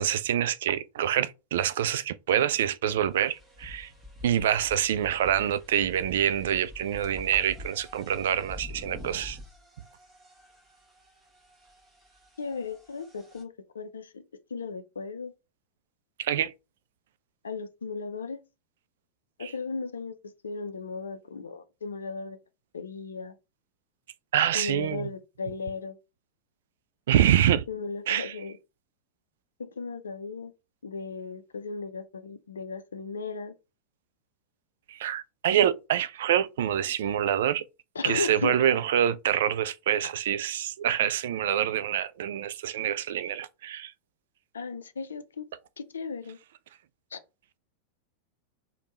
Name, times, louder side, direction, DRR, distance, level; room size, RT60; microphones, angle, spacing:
voice 1, 0.0-3.9 4.2-9.4 16.2-16.5 19.4-19.5 24.3-25.1 27.1-27.7 28.1-28.3 34.9-37.6 38.0-43.9, right 10 dB, 60° right, 0.3 m, -26 dB
sound 1, 2.5-2.6 3.1-13.4, left 1 dB, 10° right, 1.2 m, -47 dB
voice 2, 12.4-14.2 14.5-15.3 17.4-18.4 19.4-22.4 22.7-23.3 24.5-26.0 27.7-28.6 29.6-30.5 30.8-33.5 37.9-38.6 44.5-45.5 45.8-46.4 47.1-47.2, left 4 dB, 70° left, 0.5 m, -36 dB
3.4 x 2.2 x 4.0 m
figure-of-eight pair, 90°, 0 cm